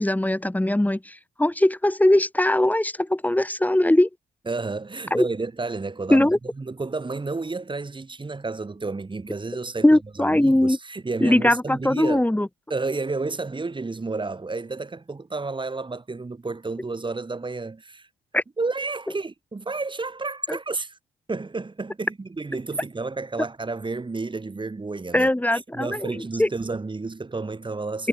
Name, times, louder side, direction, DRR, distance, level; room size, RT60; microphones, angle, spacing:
voice 1, 0.0-4.1 5.1-5.3 6.1-6.4 9.8-10.8 11.2-12.5 18.3-18.4 20.5-20.6 25.1-26.1 26.4-26.5 28.0-28.1, left 1 dB, 10° left, 6.1 m, -20 dB
voice 2, 4.5-6.3 6.6-12.3 12.7-18.1 18.6-21.0 21.3-28.1, right 3 dB, 25° right, 7.7 m, -31 dB
cardioid pair, 90°, 20 cm